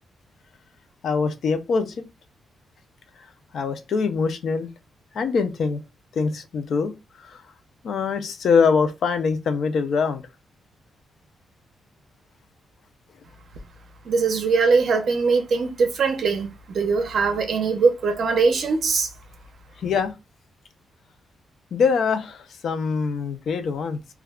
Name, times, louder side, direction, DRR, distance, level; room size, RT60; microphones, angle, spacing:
voice 1, 1.0-1.9 3.5-4.7 5.1-5.8 6.1-7.4 7.8-10.2 19.8-20.1 21.7-24.0, left 5 dB, 55° left, 0.4 m, -23 dB
voice 2, 14.0-19.1, right 4 dB, 50° right, 0.6 m, -21 dB
2.2 x 2.2 x 3.4 m
wide cardioid pair, 180°, 0 cm